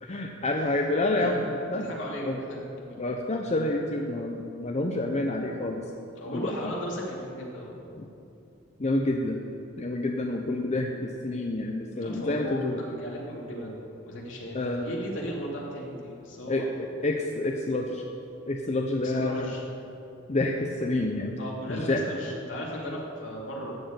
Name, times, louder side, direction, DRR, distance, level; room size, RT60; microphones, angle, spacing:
voice 1, 0.0-1.9 2.3-2.4 3.0-5.8 6.3-6.7 8.0-8.1 8.8-9.4 9.8-12.8 14.5-14.9 16.5-18.0 18.5-19.5 20.3-21.4 21.7-22.0, left 2 dB, 35° left, 2 dB, 0.6 m, -28 dB
voice 2, 1.7-3.0 6.1-7.9 11.9-14.6 14.8-16.8 19.0-19.7 21.4-23.7, equal, 70° left, -3 dB, 2.7 m, -36 dB
14.0 x 5.1 x 9.1 m, 2.8 s
head